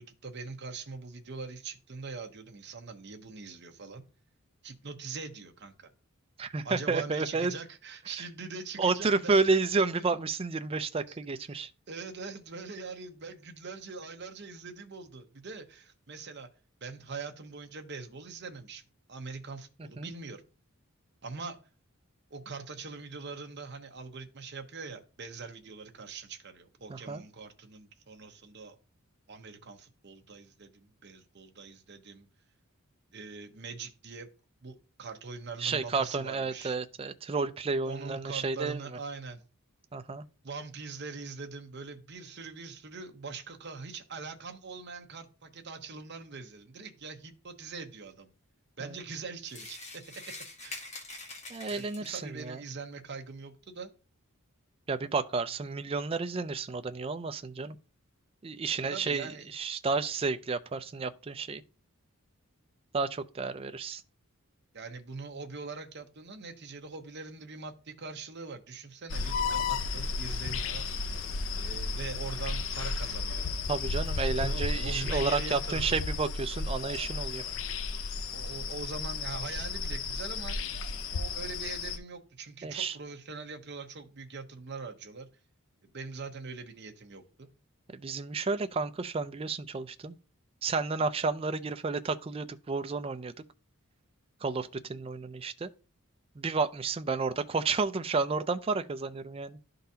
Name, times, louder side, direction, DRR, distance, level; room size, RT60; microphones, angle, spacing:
voice 1, 0.0-4.0 4.6-5.9 6.6-10.2 11.1-11.2 11.5-11.6 11.9-16.5 16.8-18.8 19.1-20.4 21.2-21.6 22.3-28.8 29.3-32.3 33.1-34.3 34.6-36.8 37.8-39.4 40.4-48.3 48.8-50.0 50.6-50.9 51.7-53.9 58.9-59.5 64.7-70.9 71.5-73.6 74.3-76.0 78.3-80.6 81.1-85.3 85.8-87.5, right 4 dB, 50° right, 0.8 m, -42 dB
voice 2, 6.4-7.5 8.8-11.7 20.0-20.1 26.9-27.2 35.6-38.8 39.9-40.2 48.8-49.0 51.5-52.6 54.9-57.8 58.4-61.6 62.9-64.0 73.7-77.4 82.6-83.0 87.9-90.2 90.6-93.3 94.4-95.7 96.4-99.6, right 4 dB, 25° right, 0.4 m, -31 dB
sound 1, 49.5-52.4, left 2 dB, 30° left, 1.0 m, -45 dB
sound 2, 69.1-82.0, left 4 dB, 65° left, 0.5 m, -33 dB
11.5 x 3.9 x 2.8 m
head